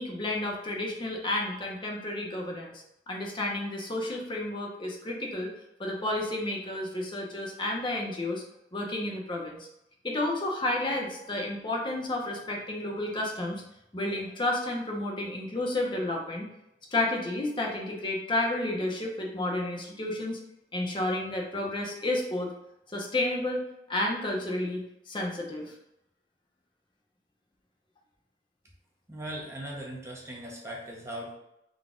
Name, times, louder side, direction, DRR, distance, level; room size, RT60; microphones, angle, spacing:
voice 1, 0.0-2.7 3.1-5.5 5.8-8.4 8.7-9.6 10.0-13.6 13.9-16.5 16.9-20.4 20.7-22.5 22.9-23.6 23.9-25.7, left 1 dB, 30° left, -1 dB, 0.7 m, -31 dB
voice 2, 29.1-31.3, right 1 dB, 15° right, -3 dB, 0.7 m, -39 dB
3.9 x 2.3 x 3.6 m, 0.83 s
head